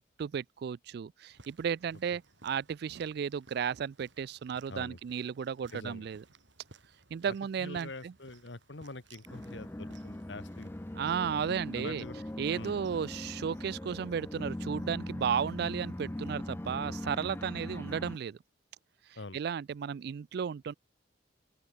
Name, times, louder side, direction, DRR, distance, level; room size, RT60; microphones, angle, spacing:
voice 1, 0.0-6.2 7.1-8.1 10.9-12.0 12.4-18.4 19.3-20.7, right 7 dB, 60° right, 0.3 m, -34 dB
sound 1, 1.3-13.2, right 3 dB, 85° right, 5.0 m, -61 dB
voice 2, 5.7-6.1 7.3-10.8 11.5-12.2 12.5-12.8 19.2-19.4, left 2 dB, 75° left, 1.7 m, -45 dB
sound 2, 9.3-18.2, left 1 dB, 10° left, 0.5 m, -40 dB
open air
head